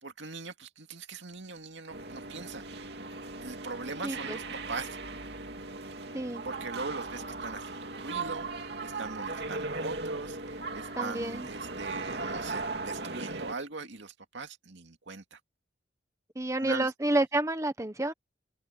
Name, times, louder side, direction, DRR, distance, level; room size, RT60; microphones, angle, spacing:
voice 1, 0.0-2.6 3.4-5.0 6.4-15.4 16.6-16.9, right 3 dB, 80° right, 2.3 m, -41 dB
sound 1, 1.9-13.5, right 3 dB, 60° right, 2.8 m, -38 dB
voice 2, 4.0-4.4 6.1-6.4 11.0-11.5 16.4-18.1, right 2 dB, 15° right, 1.0 m, -29 dB
head